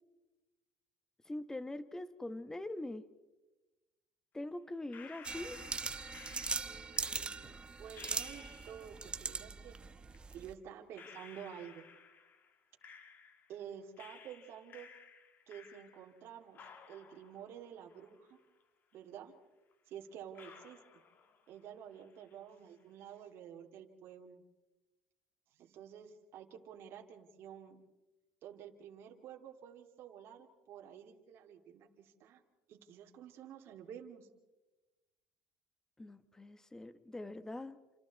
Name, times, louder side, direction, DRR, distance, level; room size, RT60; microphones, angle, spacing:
voice 1, 1.2-3.0 4.3-5.6 36.0-37.8, left 1 dB, 10° left, 12 dB, 1.4 m, -43 dB
sound 1, 4.9-9.0 10.1-10.2 10.9-13.6 14.0-16.2 16.5-18.6 18.9-19.0 19.7-19.8 20.3-21.7 21.9-22.5, left 6 dB, 45° left, 2.6 m, -56 dB
sound 2, 5.2-10.5, right 4 dB, 20° right, 1.1 m, -41 dB
voice 2, 6.7-9.8 10.3-11.8 13.5-14.9 15.5-16.6 16.9-18.4 18.9-19.3 19.9-20.8 21.5-24.4 25.6-27.8 28.4-32.4 32.7-34.3, right 9 dB, 60° right, 2 dB, 2.6 m, -50 dB
28.5 x 27.5 x 4.2 m, 1.1 s
supercardioid pair, 105°, 5 cm